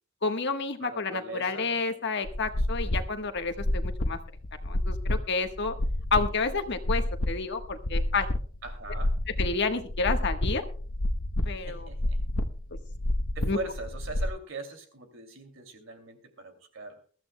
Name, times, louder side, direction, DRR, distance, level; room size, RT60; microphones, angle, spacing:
voice 1, 0.2-4.2 4.6-5.7 6.1-8.3 9.4-10.6 11.4-11.9 13.4-13.6, left 4 dB, 60° left, 6 dB, 1.3 m, -30 dB
voice 2, 0.8-1.8 2.8-3.0 8.6-9.1 11.5-12.2 13.3-17.0, right 3 dB, 70° right, 6 dB, 2.6 m, -41 dB
sound 1, 2.2-14.3, left 1 dB, 85° left, 1.0 m, -30 dB
22.5 x 13.5 x 2.2 m, 0.42 s
head